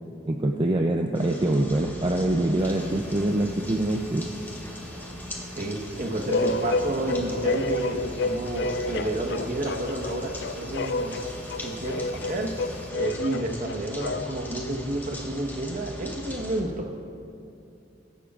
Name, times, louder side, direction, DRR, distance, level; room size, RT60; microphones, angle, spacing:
voice 1, 0.3-4.3, right 1 dB, 25° right, 2 dB, 0.5 m, -24 dB
sound 1, 1.1-16.6, equal, 10° left, 1.4 m, -41 dB
sound 2, 2.6-12.9, equal, 10° right, 0.9 m, -44 dB
voice 2, 5.6-11.2 11.6-12.5 12.9-16.9, right 1 dB, 50° right, 2 dB, 1.2 m, -30 dB
sound 3, 6.3-14.5, left 2 dB, 65° left, 0.5 m, -30 dB
22.5 x 11.5 x 2.5 m, 2.7 s
head